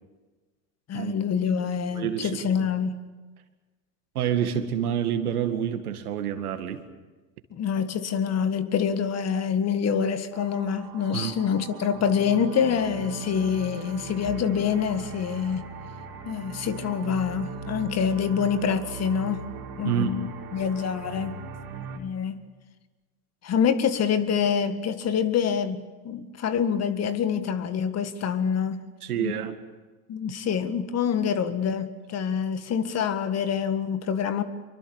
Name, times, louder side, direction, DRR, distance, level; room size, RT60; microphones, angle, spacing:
voice 1, 0.9-3.0 7.5-15.7 16.2-19.5 19.8-21.4 22.0-22.4 23.4-28.9 29.2-29.3 30.1-34.4, left 7 dB, 35° left, 1.8 m, -26 dB
voice 2, 1.6-2.7 4.1-6.8 11.1-11.4 19.8-20.2 29.0-29.5, right 9 dB, 80° right, 2.2 m, -28 dB
sound 1, 10.3-22.0, right 5 dB, 50° right, 4.2 m, -38 dB
25.5 x 23.5 x 7.2 m
hypercardioid pair, 90°, 44 cm